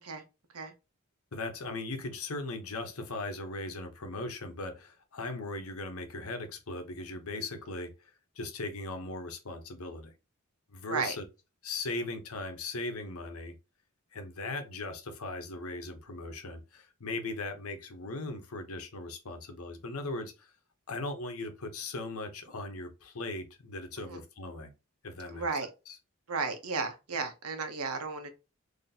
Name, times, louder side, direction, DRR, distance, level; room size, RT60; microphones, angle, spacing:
voice 1, 1.3-7.9 8.4-10.1 10.7-11.2 11.6-13.5 14.1-20.5 20.9-24.7 25.0-25.5 25.9-26.0, left 2 dB, 80° left, 0.9 m, -38 dB
voice 2, 25.3-25.7 26.3-28.3, right 4 dB, 90° right, 0.9 m, -34 dB
4.1 x 2.9 x 2.7 m
head